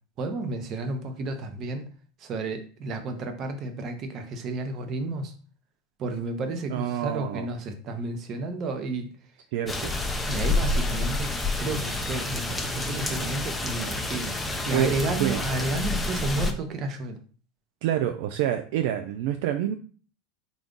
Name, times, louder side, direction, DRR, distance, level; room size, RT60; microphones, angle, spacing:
voice 1, 0.2-1.9 2.2-5.3 6.0-9.3 10.3-14.4 14.6-17.2, right 2 dB, 40° right, 6 dB, 0.8 m, -32 dB
voice 2, 6.7-7.5 9.5-9.9 14.7-14.9 15.2-15.4 17.8-19.7, right 11 dB, 70° right, 7 dB, 0.3 m, -27 dB
sound 1, 9.7-16.5, left 2 dB, 10° left, 0.5 m, -28 dB
3.8 x 2.3 x 3.7 m, 0.41 s
supercardioid pair, 115°, 0 cm